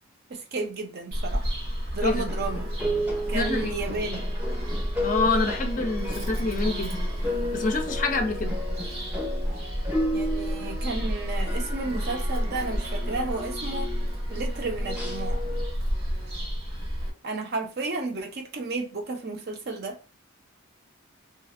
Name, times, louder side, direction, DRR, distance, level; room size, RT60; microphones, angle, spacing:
voice 1, 0.3-1.4 1.9-2.7 3.3-4.3 10.1-13.9 14.3-15.4 17.2-20.0, right 3 dB, 50° right, 0.5 m, -32 dB
Bird vocalization bird call bird song, 1.1-17.1, equal, 75° right, 1.0 m, -30 dB
sound 1, 2.3-15.7, equal, 5° right, 0.6 m, -34 dB
voice 2, 3.3-3.8 5.0-6.9 7.5-8.5, left 3 dB, 40° left, 0.4 m, -27 dB
2.8 x 2.4 x 2.4 m
head